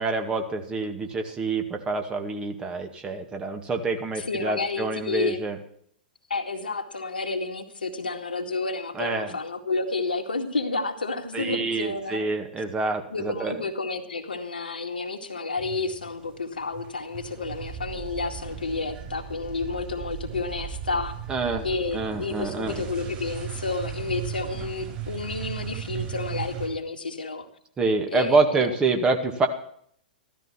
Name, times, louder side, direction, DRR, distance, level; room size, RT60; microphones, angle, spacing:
voice 1, 0.0-5.6 8.9-9.3 11.3-13.6 21.3-21.7 21.9-22.8 27.8-29.5, right 3 dB, 15° right, 4 dB, 2.1 m, -26 dB
voice 2, 4.2-5.4 6.3-12.3 13.1-21.1 21.6-27.5 28.1-28.7, left 3 dB, 75° left, 3 dB, 2.1 m, -30 dB
sound 1, 15.6-16.3 16.6-26.7, right 9 dB, 35° right, 6.6 m, -36 dB
15.0 x 13.5 x 4.5 m, 0.64 s
figure-of-eight pair, 105°, 5 cm